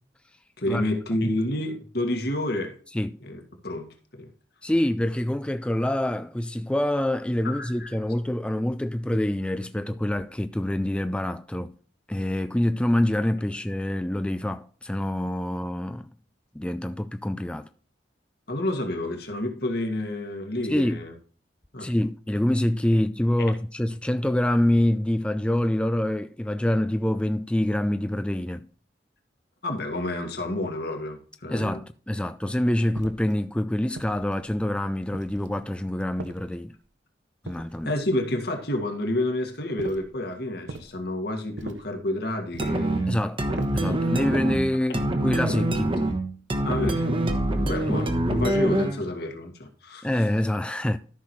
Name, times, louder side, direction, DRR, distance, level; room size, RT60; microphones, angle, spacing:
voice 1, 0.6-2.7 3.2-3.9 4.2-4.3 7.4-7.9 18.5-21.1 21.7-21.9 29.6-31.8 37.9-43.2 46.6-47.1 47.6-50.1, left 1 dB, 60° left, 1.9 m, -29 dB
voice 2, 4.6-11.7 12.1-16.1 16.5-17.7 20.7-21.0 21.8-28.7 31.5-36.7 37.4-37.9 43.1-43.4 43.7-46.0 50.0-51.0, left 1 dB, 5° left, 0.3 m, -26 dB
sound 1, 33.0-33.4 34.0-34.6 35.1-35.6 36.2-36.8 37.5-38.1 39.8-40.2 40.7-41.0 41.6-42.0 42.5-42.9 43.5-43.9, right 2 dB, 90° right, 0.9 m, -41 dB
sound 2, 42.6-49.1, right 1 dB, 30° right, 1.1 m, -25 dB
13.5 x 5.9 x 3.1 m
head